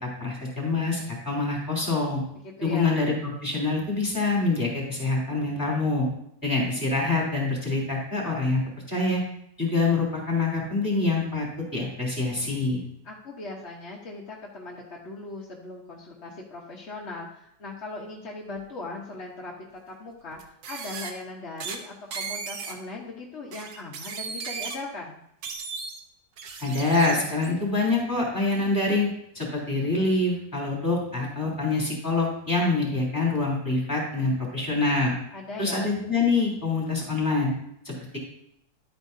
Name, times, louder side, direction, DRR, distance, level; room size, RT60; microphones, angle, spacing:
voice 1, 0.0-2.2 2.6-6.1 6.4-8.6 8.9-9.2 9.6-11.5 11.7-12.8 26.6-29.1 29.3-35.1 35.6-37.5 37.8-38.2, left 3 dB, 10° left, -3 dB, 3.3 m, -25 dB
voice 2, 2.4-3.0 13.0-19.5 19.9-25.2 35.3-35.9, left 2 dB, 45° left, -3 dB, 1.2 m, -39 dB
sound 1, 18.6-18.7 20.3-21.1 21.6-21.8 22.1-22.7 23.5-24.8 25.4-26.0 26.4-27.5, right 5 dB, 80° right, 1.6 m, -36 dB
12.0 x 8.8 x 2.7 m, 0.76 s
omnidirectional pair, 1.9 m